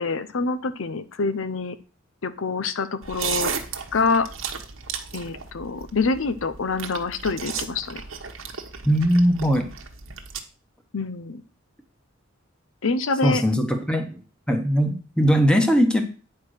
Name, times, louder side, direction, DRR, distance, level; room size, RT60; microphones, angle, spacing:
voice 1, 0.0-1.8 2.2-3.6 3.9-4.3 5.1-8.0 10.9-11.4 12.8-13.4, left 4 dB, 75° left, 12 dB, 0.7 m, -26 dB
sound 1, 3.0-10.4, right 6 dB, 75° right, 1.2 m, -34 dB
voice 2, 8.8-9.7 13.2-14.2 14.5-16.0, equal, 5° left, 5 dB, 1.3 m, -20 dB
9.5 x 4.7 x 6.4 m, 0.36 s
head